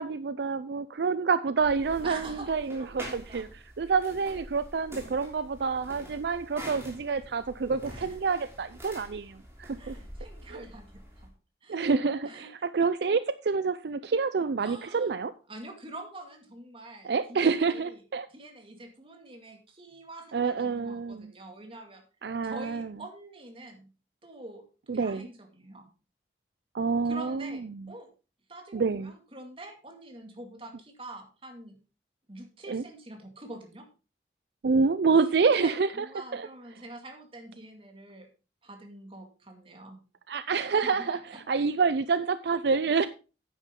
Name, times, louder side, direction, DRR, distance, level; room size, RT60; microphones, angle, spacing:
voice 1, 0.0-9.9 10.5-10.6 11.7-15.3 17.0-18.3 20.3-21.3 22.2-22.9 24.9-25.3 26.7-27.8 28.7-29.1 32.7-32.8 34.6-36.1 36.3-36.5 40.3-43.1, right 5 dB, 65° right, 0.4 m, -28 dB
Walking down stairs from top floor to first floor, 1.6-11.3, equal, 15° right, 3.2 m, -46 dB
voice 2, 2.0-3.4 7.9-8.2 9.8-11.3 11.6-11.9 12.2-12.7 14.6-15.1 15.5-18.0 18.3-22.0 22.4-23.9 24.2-25.9 27.0-28.1 28.5-31.8 32.3-33.9 35.4-38.3 38.6-40.0 40.6-41.4, right 2 dB, 30° right, 2.2 m, -46 dB
9.9 x 9.0 x 3.7 m
head